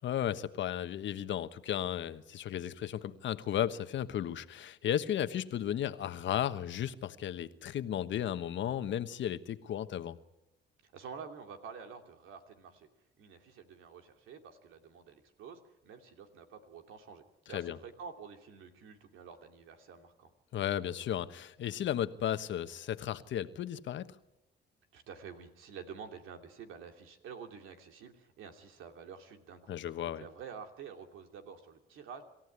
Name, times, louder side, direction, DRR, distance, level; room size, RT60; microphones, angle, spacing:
voice 1, 0.0-10.2 17.5-17.8 20.5-24.1 29.7-30.2, left 10 dB, 70° left, 11 dB, 1.3 m, -34 dB
voice 2, 10.8-12.9 13.2-20.3 24.9-29.7 30.2-32.2, right 6 dB, 85° right, 5 dB, 2.8 m, -49 dB
27.0 x 14.5 x 9.8 m, 0.93 s
cardioid pair, 90°, 20 cm